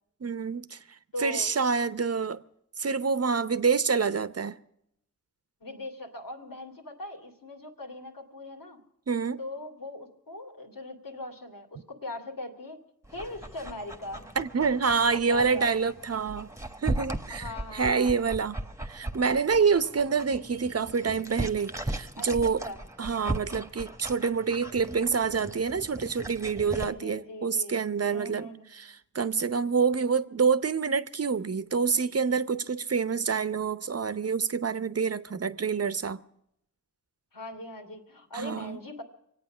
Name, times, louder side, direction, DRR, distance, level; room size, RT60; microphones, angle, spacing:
voice 1, 0.2-0.8 1.2-2.4 2.8-4.6 9.1-9.4 14.4-16.5 16.8-18.6 18.8-22.6 23.0-36.2 38.3-38.8, right 5 dB, 45° right, 0.8 m, -27 dB
voice 2, 1.1-1.5 5.6-8.8 9.4-12.8 13.1-14.3 15.2-15.7 17.3-18.1 22.2-22.3 22.6-22.8 26.6-27.7 28.1-28.6 37.3-39.0, left 1 dB, 80° left, 2.6 m, -40 dB
Dog, 13.0-26.8, right 1 dB, 10° right, 1.2 m, -38 dB
24.0 x 8.8 x 6.2 m
cardioid pair, 50°, 34 cm